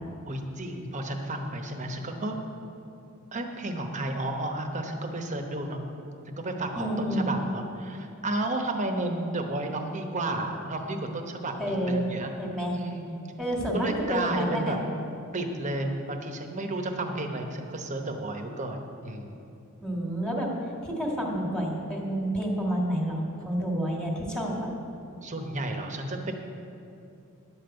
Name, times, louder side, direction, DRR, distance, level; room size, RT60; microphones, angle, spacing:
voice 1, 0.3-2.4 3.3-5.8 6.4-12.3 12.7-13.0 13.7-14.8 15.3-19.4 25.2-26.3, right 2 dB, 35° right, 4 dB, 0.9 m, -32 dB
voice 2, 6.7-7.4 11.6-12.0 12.4-12.8 13.4-14.8 19.8-20.5 20.8-24.7, equal, 5° left, -2 dB, 1.7 m, -29 dB
11.5 x 5.4 x 7.8 m, 2.7 s
head